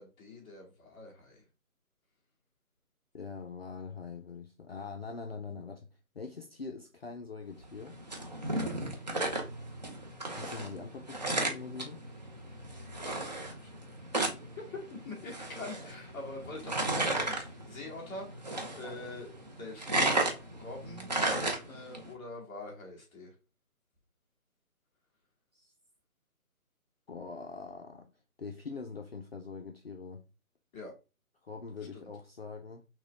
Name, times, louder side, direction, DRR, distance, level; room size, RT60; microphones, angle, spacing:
voice 1, 0.0-1.4 8.5-8.7 12.9-13.2 13.4-13.9 14.4-18.4 18.7-19.3 19.6-20.3 20.6-21.1 21.7-23.3 30.7-30.9 31.9-32.1, left 2 dB, 10° left, 1.1 m, -45 dB
voice 2, 3.1-5.9 6.1-8.0 10.3-12.0 25.5-25.7 27.1-28.1 28.4-30.2 31.4-32.8, left 4 dB, 45° left, 0.5 m, -43 dB
sound 1, 7.6-22.1, right 2 dB, 30° right, 0.6 m, -35 dB
6.1 x 2.2 x 3.5 m
hypercardioid pair, 160°, 43 cm